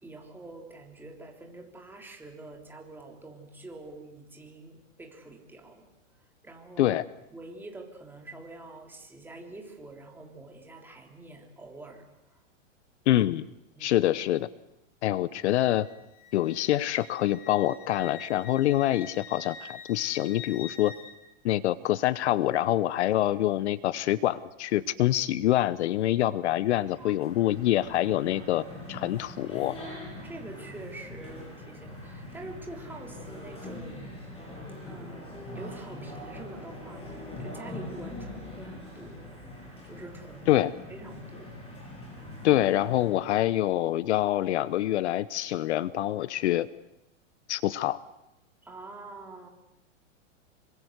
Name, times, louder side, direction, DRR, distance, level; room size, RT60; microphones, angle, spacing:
voice 1, 0.0-5.9 6.4-7.0 7.3-12.4 13.8-14.0 27.0-27.1 30.2-34.1 34.8-39.4 39.8-40.6 40.9-41.5 48.6-49.5, right 2 dB, 5° right, 1 dB, 3.5 m, -46 dB
voice 2, 13.1-13.4 13.8-14.5 15.0-15.9 16.3-20.9 21.4-29.8 40.5-40.7 42.4-46.7 47.5-48.0, left 13 dB, 60° left, 18 dB, 0.9 m, -26 dB
Wind instrument woodwind instrument, 15.4-21.2, left 5 dB, 40° left, 5.0 m, -46 dB
sound 1, 26.6-43.1, left 1 dB, 15° left, 7.7 m, -42 dB
26.5 x 24.5 x 8.1 m, 0.87 s
supercardioid pair, 155°, 38 cm